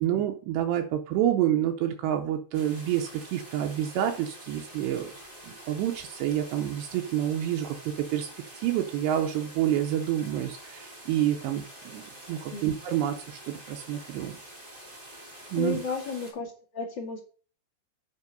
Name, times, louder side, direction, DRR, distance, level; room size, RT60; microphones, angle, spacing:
voice 1, 0.0-5.1 5.5-8.3 8.6-11.6 11.9-12.0 12.3-14.4 15.5-15.8, right 11 dB, 80° right, 4 dB, 2.8 m, -28 dB
sound 1, 2.5-16.3, right 1 dB, 20° right, 1.6 m, -47 dB
voice 2, 15.5-17.2, left 5 dB, 45° left, -2 dB, 1.5 m, -33 dB
8.2 x 5.6 x 5.2 m, 0.40 s
omnidirectional pair, 5.2 m